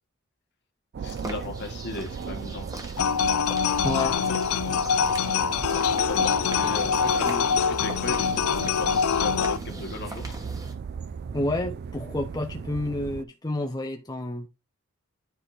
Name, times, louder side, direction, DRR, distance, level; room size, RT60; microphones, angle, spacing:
sound 1, 0.9-13.2, right 6 dB, 50° right, 0.3 m, -37 dB
voice 1, 1.0-2.6 5.8-10.4, left 3 dB, 55° left, 1.7 m, -37 dB
sound 2, 1.0-10.7, right 2 dB, 15° right, 1.4 m, -42 dB
sound 3, 3.0-9.6, left 6 dB, 80° left, 0.4 m, -24 dB
voice 2, 3.8-4.2 4.7-4.8 11.3-14.5, left 1 dB, 20° left, 0.6 m, -30 dB
10.0 x 3.6 x 4.2 m
head